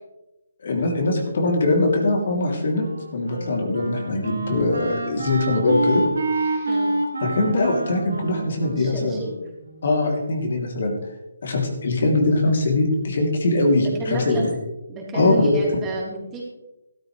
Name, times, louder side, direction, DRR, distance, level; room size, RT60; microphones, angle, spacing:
voice 1, 0.6-2.8 3.1-6.0 6.3-6.7 7.2-9.2 9.8-10.9 11.4-14.5 15.1-15.6, left 2 dB, 60° left, 1 dB, 3.1 m, -22 dB
Wind instrument woodwind instrument, 2.7-9.9, right 2 dB, 75° right, 2.5 m, -28 dB
voice 2, 6.7-7.0 8.7-9.3 13.8-14.4 14.9-16.4, right 3 dB, 15° right, -4 dB, 3.7 m, -32 dB
13.5 x 13.0 x 3.3 m, 0.96 s
figure-of-eight pair, 150°, 0 cm